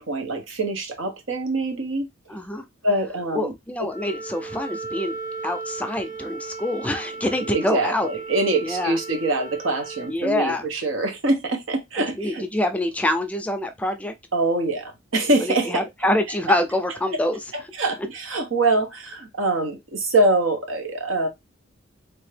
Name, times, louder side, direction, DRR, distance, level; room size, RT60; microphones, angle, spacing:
voice 1, 0.0-2.1 2.8-3.5 7.4-12.4 14.3-15.8 17.8-21.3, right 2 dB, 85° right, 1.0 m, -24 dB
voice 2, 2.3-2.7 3.3-5.2 5.4-8.1 8.6-9.0 10.1-10.7 12.2-14.1 15.4-17.4, left 1 dB, 5° left, 0.3 m, -25 dB
Wind instrument woodwind instrument, 3.8-10.2, right 3 dB, 40° right, 0.8 m, -36 dB
3.4 x 2.8 x 3.3 m
head